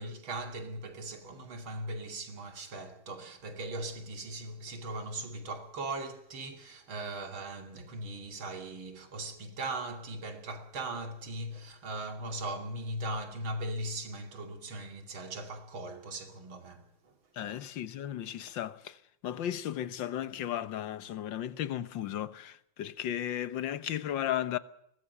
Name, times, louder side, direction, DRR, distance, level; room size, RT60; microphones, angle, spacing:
voice 1, 0.0-17.1 17.4-17.5, right 2 dB, 70° right, 3.4 m, -39 dB
voice 2, 17.4-19.0 19.2-24.6, left 11 dB, 65° left, 1.7 m, -35 dB
23.0 x 19.5 x 6.8 m
omnidirectional pair, 2.3 m